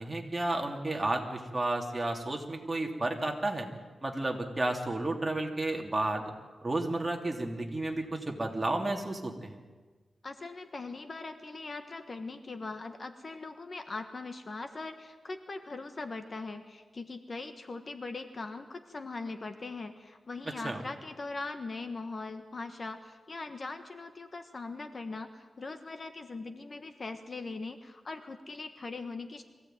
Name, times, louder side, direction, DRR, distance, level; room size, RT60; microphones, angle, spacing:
voice 1, 0.0-3.7 4.0-6.2 6.6-9.6 20.6-20.8, right 2 dB, 20° right, 1 dB, 3.0 m, -32 dB
voice 2, 10.2-29.4, left 3 dB, 40° left, 7 dB, 1.4 m, -41 dB
23.5 x 16.5 x 9.3 m, 1.3 s
wide cardioid pair, 120°, 0 cm